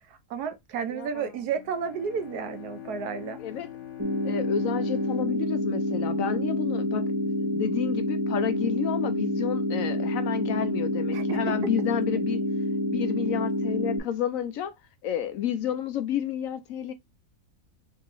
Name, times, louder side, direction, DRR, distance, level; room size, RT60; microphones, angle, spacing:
voice 1, 0.1-3.4 11.1-11.4, right 6 dB, 80° right, 1.3 m, -32 dB
voice 2, 0.9-1.3 3.4-3.7 4.2-12.4 12.9-14.7 15.0-16.9, left 9 dB, 70° left, 0.9 m, -31 dB
Bowed string instrument, 1.5-6.7, left 11 dB, 85° left, 1.4 m, -44 dB
sound 1, 4.0-14.0, left 1 dB, 20° right, 0.5 m, -28 dB
3.7 x 3.6 x 3.0 m
omnidirectional pair, 1.7 m